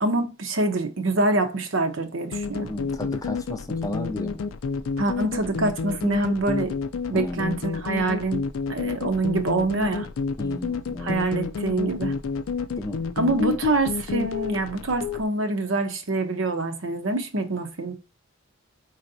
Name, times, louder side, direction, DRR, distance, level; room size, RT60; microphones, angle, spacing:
voice 1, 0.0-2.7 5.0-6.8 7.1-8.4 8.7-10.1 11.0-12.1 13.2-17.9, right 2 dB, 70° right, 0.8 m, -25 dB
sound 1, 2.3-15.2, left 5 dB, 80° left, 0.4 m, -30 dB
voice 2, 2.6-4.5 7.1-7.6 10.4-11.2 12.8-13.0, left 1 dB, 15° left, 0.5 m, -33 dB
4.4 x 4.1 x 2.6 m
head